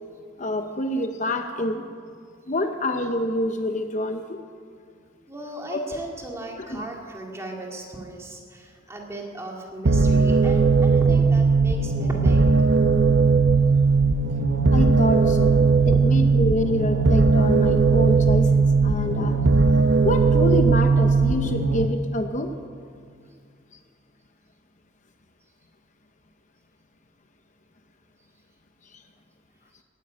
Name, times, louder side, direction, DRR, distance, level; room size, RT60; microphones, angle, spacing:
voice 1, 0.4-1.8 2.5-4.4 5.7-6.0 6.7-6.9 14.7-19.4 20.0-22.5, left 1 dB, 40° left, 7 dB, 0.7 m, -26 dB
voice 2, 5.3-12.5 15.9-16.0, right 1 dB, 15° right, 0 dB, 2.2 m, -36 dB
sound 1, 9.9-21.9, right 4 dB, 70° right, 0.8 m, -18 dB
15.0 x 10.0 x 9.5 m, 2.2 s
head